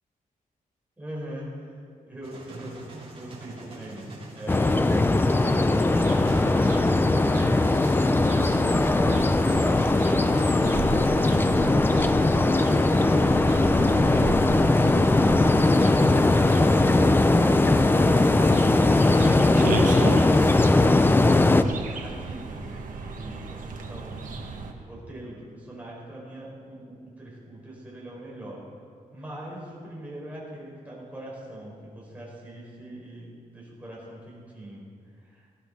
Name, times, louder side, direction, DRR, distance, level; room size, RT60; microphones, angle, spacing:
voice 1, 1.0-1.8 2.1-5.6 18.0-28.6 29.1-34.8 35.1-35.5, right 1 dB, 10° right, -5 dB, 4.3 m, -41 dB
sound 1, 2.2-21.6, right 2 dB, 40° right, 3.4 m, -44 dB
sound 2, 4.5-21.6, left 2 dB, 15° left, 0.5 m, -20 dB
sound 3, 5.5-20.7 21.6-24.7, right 4 dB, 65° right, 1.4 m, -36 dB
19.0 x 14.0 x 4.1 m, 2.2 s
wide cardioid pair, 180°, 15 cm